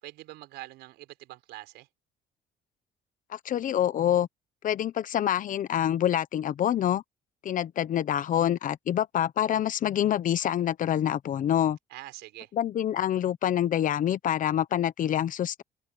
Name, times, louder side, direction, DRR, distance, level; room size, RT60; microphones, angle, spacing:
voice 1, 0.0-1.9 11.9-12.5, right 17 dB, 85° right, 4.9 m, -44 dB
voice 2, 3.3-4.3 4.6-7.0 7.4-11.8 12.5-15.6, left 10 dB, 50° left, 1.0 m, -26 dB
cardioid pair, 110°, 17 cm